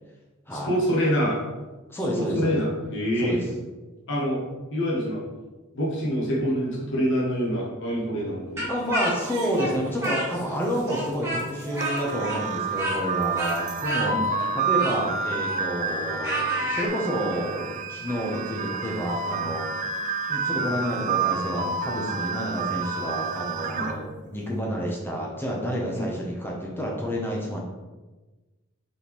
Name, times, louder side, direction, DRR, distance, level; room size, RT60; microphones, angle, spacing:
voice 1, 0.5-1.4 2.1-3.4 4.1-4.4 4.7-5.2 5.7-8.7 14.1-14.3 23.7-23.9 25.9-26.1, equal, 60° left, -4 dB, 1.0 m, -26 dB
voice 2, 1.9-2.6 3.2-3.4 8.7-14.2 14.5-19.9 20.3-27.6, equal, 10° left, -2 dB, 0.6 m, -29 dB
Speech, 8.6-10.6 10.9-16.9, right 1 dB, 10° right, 1.4 m, -31 dB
sound 1, 9.0-14.0, right 2 dB, 80° right, 0.8 m, -42 dB
sound 2, 11.8-23.9, right 4 dB, 35° right, 0.3 m, -29 dB
4.1 x 3.4 x 3.0 m, 1.2 s
head